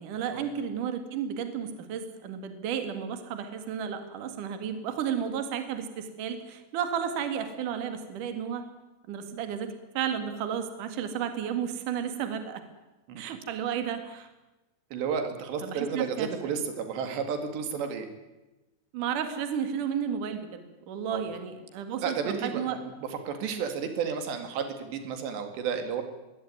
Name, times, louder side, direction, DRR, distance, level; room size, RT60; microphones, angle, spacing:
voice 1, 0.0-8.7 9.1-12.6 13.2-14.3 15.6-16.5 18.9-22.8, right 8 dB, 55° right, 8 dB, 3.3 m, -33 dB
voice 2, 14.9-18.1 21.1-21.2 22.0-22.8 23.3-26.0, right 6 dB, 85° right, 6 dB, 4.4 m, -32 dB
23.0 x 17.0 x 9.6 m, 1.1 s
omnidirectional pair, 4.8 m